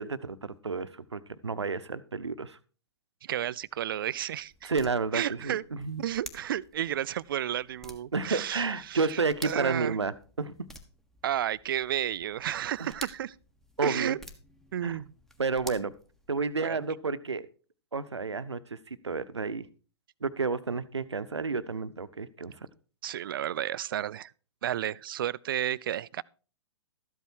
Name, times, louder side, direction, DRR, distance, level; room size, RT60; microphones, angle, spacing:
voice 1, 0.0-2.6 4.6-6.0 8.1-10.7 12.8-12.9 13.8-14.2 14.8-15.0 15.4-15.9 16.3-17.4 17.9-19.7 20.2-22.5, right 4 dB, 80° right, 0.9 m, -31 dB
voice 2, 3.2-4.7 5.1-5.6 6.0-10.0 11.2-13.3 13.8-14.2 14.7-15.1 16.6-16.8 23.0-24.3 24.6-26.2, right 11 dB, 50° right, 0.4 m, -32 dB
sound 1, 3.6-16.7, equal, 5° left, 1.3 m, -51 dB
13.5 x 8.3 x 4.5 m
figure-of-eight pair, 115°, 14 cm